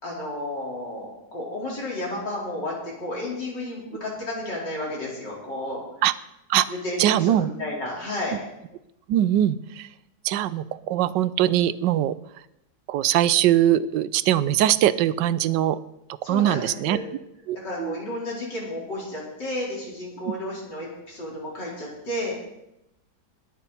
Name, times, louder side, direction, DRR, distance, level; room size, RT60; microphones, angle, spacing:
voice 1, 0.0-5.8 6.7-8.3 16.2-17.1 17.5-22.3, left 1 dB, 75° left, -5 dB, 5.0 m, -32 dB
voice 2, 7.0-7.5 9.1-9.9 10.2-12.1 12.9-15.8 16.2-17.0 17.5-18.0, right 12 dB, 80° right, 15 dB, 1.3 m, -22 dB
21.0 x 9.1 x 4.2 m, 0.87 s
omnidirectional pair, 1.9 m